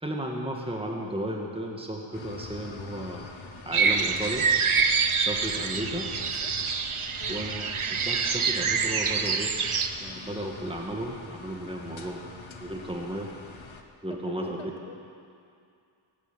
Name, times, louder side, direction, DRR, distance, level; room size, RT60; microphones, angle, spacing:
voice 1, 0.0-3.2 3.7-4.5 5.2-6.1 7.3-7.6 7.9-9.5 10.0-12.3 12.6-13.3 14.0-14.7, right 1 dB, 10° right, 0 dB, 1.7 m, -34 dB
sound 1, 2.1-13.8, left 4 dB, 70° left, 1.3 m, -44 dB
sound 2, 3.7-9.9, right 5 dB, 85° right, 0.9 m, -26 dB
voice 2, 6.1-6.6 7.2-7.4 14.1-15.0, left 3 dB, 85° left, 5 dB, 1.4 m, -43 dB
16.0 x 9.3 x 9.1 m, 2.4 s
wide cardioid pair, 50°, 49 cm